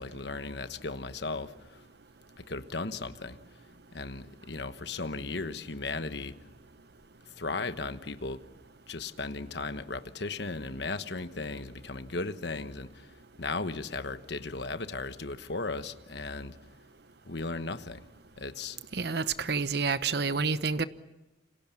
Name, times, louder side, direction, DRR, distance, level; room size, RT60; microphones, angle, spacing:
voice 1, 0.0-1.8 2.4-3.4 3.9-6.4 7.4-8.4 8.9-16.6 17.3-18.1 18.4-18.8, left 3 dB, 65° left, 1.2 m, -36 dB
voice 2, 18.9-20.8, right 4 dB, 60° right, 1.0 m, -29 dB
29.0 x 26.0 x 7.2 m
head